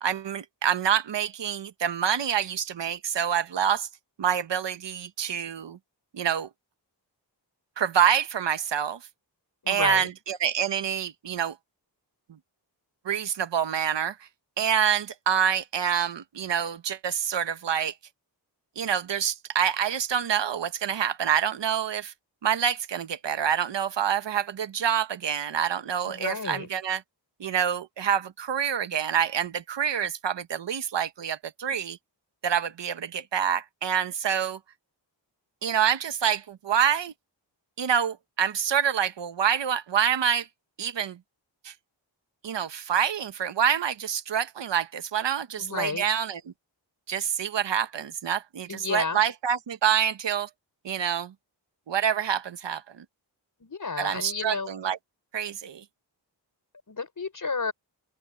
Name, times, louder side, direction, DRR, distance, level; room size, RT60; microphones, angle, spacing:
voice 1, 0.0-3.9 4.2-5.8 6.1-6.5 7.8-9.0 9.7-11.6 13.0-14.2 14.6-17.9 18.8-22.1 22.4-27.0 27.4-32.0 32.4-34.6 35.6-37.1 37.8-40.5 40.8-41.2 41.6-41.7 42.4-46.4 47.1-50.5 50.8-51.3 51.9-53.0 54.0-55.0 55.3-55.8, right 8 dB, 75° right, 1.1 m, -27 dB
voice 2, 9.6-10.1 26.1-26.7 45.6-46.0 48.7-49.2 53.6-54.7 56.9-57.7, left 4 dB, 45° left, 6.0 m, -31 dB
open air
wide cardioid pair, 150°, 44 cm